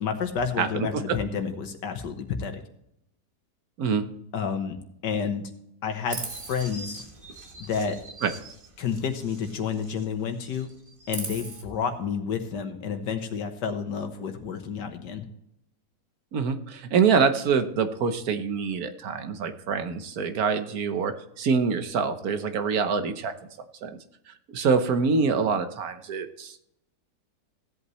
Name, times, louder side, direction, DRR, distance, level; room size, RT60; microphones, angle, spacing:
voice 1, 0.0-2.6 4.3-4.8 5.0-5.4 5.8-6.2 6.5-7.0 7.6-8.0 8.8-10.7 11.1-15.3, left 6 dB, 85° left, 7 dB, 1.8 m, -30 dB
voice 2, 0.6-1.2 3.8-4.1 8.2-8.3 16.3-23.3 23.8-24.0 24.3-26.6, right 5 dB, 65° right, 9 dB, 1.3 m, -25 dB
Chirp tweet, 6.1-10.1 10.4-11.6, right 3 dB, 35° right, 1.5 m, -40 dB
16.0 x 8.2 x 3.1 m, 0.78 s
omnidirectional pair, 1.8 m